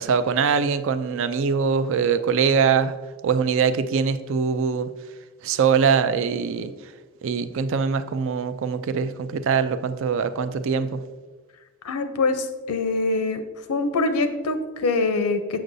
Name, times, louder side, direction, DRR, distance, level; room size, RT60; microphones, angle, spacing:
voice 1, 0.0-3.0 3.2-4.9 5.4-6.7 7.2-11.0, right 6 dB, 60° right, 12 dB, 0.4 m, -22 dB
voice 2, 11.8-13.4 13.7-15.6, left 3 dB, 90° left, 8 dB, 0.6 m, -24 dB
7.7 x 6.1 x 2.6 m, 1.3 s
head